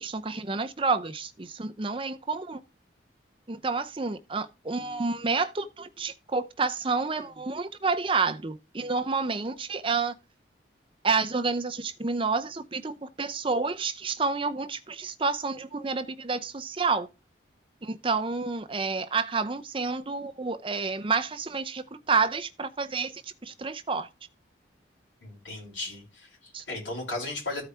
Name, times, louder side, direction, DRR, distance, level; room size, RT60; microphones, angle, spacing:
voice 1, 0.0-2.6 3.5-10.1 11.0-17.1 17.8-24.1 26.5-26.6, right 4 dB, 25° right, 0.6 m, -29 dB
voice 2, 25.2-27.7, left 2 dB, 75° left, 5.4 m, -36 dB
14.0 x 4.7 x 3.4 m
head